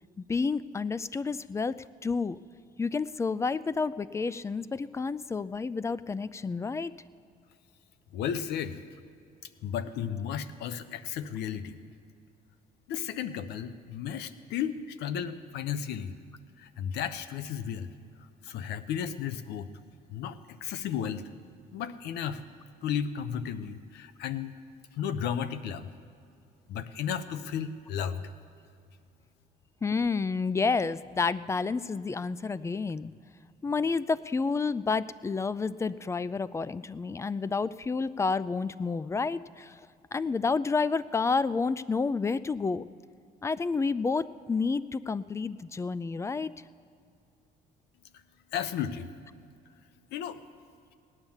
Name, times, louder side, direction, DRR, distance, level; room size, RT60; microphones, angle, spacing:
voice 1, 0.2-2.4 2.8-6.9 29.8-33.1 33.6-39.8 40.1-42.9 43.4-46.5, left 4 dB, 15° left, 18 dB, 0.4 m, -30 dB
voice 2, 8.1-8.8 9.6-11.8 12.9-16.1 16.6-17.9 18.4-19.7 20.1-21.3 21.7-22.4 22.8-24.5 25.0-25.9 26.7-28.3 48.1-48.2 48.5-49.1 50.1-50.4, left 8 dB, 80° left, 13 dB, 0.8 m, -34 dB
18.0 x 9.8 x 7.2 m, 2.5 s
cardioid pair, 110°, 17 cm